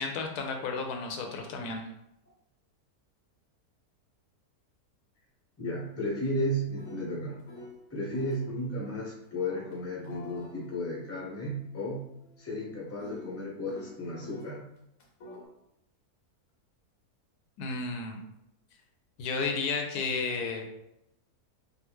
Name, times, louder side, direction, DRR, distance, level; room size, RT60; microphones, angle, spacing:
voice 1, 0.0-1.9 17.6-18.2 19.2-20.7, left 4 dB, 80° left, 3 dB, 1.1 m, -32 dB
voice 2, 5.6-7.4 7.9-12.0 12.4-14.7, equal, 15° left, -4 dB, 0.6 m, -34 dB
sound 1, 5.7-7.8 8.1-8.5 9.4-14.5 15.0-15.4, left 2 dB, 60° left, 0.9 m, -49 dB
3.5 x 2.4 x 3.0 m, 0.81 s
omnidirectional pair, 1.6 m